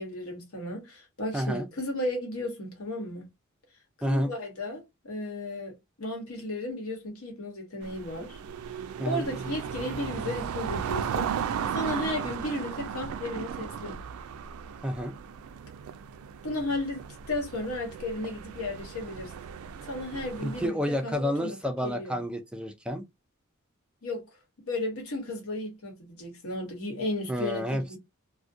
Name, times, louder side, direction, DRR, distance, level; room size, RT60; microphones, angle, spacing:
voice 1, 0.0-3.2 4.1-5.7 6.0-8.4 9.0-11.3 11.7-14.0 16.4-19.3 19.8-22.2 24.0-24.3 24.7-28.0, left 1 dB, 85° left, 1.0 m, -34 dB
voice 2, 1.3-1.7 4.0-4.3 9.0-9.3 14.8-15.1 20.4-23.0 27.3-28.0, equal, 5° right, 0.3 m, -30 dB
sound 1, 7.8-20.7, right 7 dB, 85° right, 0.3 m, -36 dB
2.4 x 2.1 x 2.5 m
head